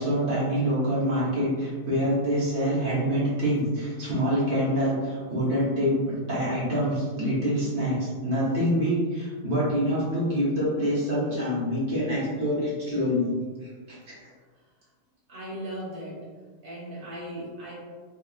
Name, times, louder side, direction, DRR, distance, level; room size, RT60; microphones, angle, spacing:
voice 1, 0.0-13.3 13.6-14.2, equal, 40° right, -9 dB, 1.3 m, -26 dB
voice 2, 15.3-16.2 16.6-17.7, equal, 60° right, -8 dB, 0.5 m, -37 dB
3.7 x 2.8 x 2.4 m, 1.5 s
omnidirectional pair, 2.3 m